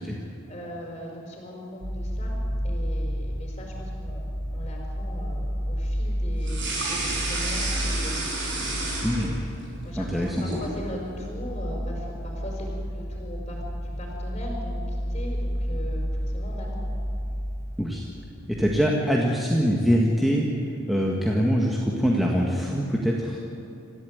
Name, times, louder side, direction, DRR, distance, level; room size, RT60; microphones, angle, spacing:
voice 1, 0.0-2.3 2.6-4.2 4.5-9.3 9.8-16.9, equal, 25° left, -1 dB, 5.0 m, -39 dB
sound 1, 1.8-18.8, equal, 65° left, 3.5 m, -31 dB
sound 2, 6.4-9.6 10.0-10.7, right 2 dB, 55° right, 6.7 m, -30 dB
voice 2, 9.0-9.4 10.0-10.4 17.8-18.1 18.5-20.5 20.9-23.4, equal, ahead, -3 dB, 1.7 m, -23 dB
27.5 x 15.0 x 9.5 m, 2.8 s
head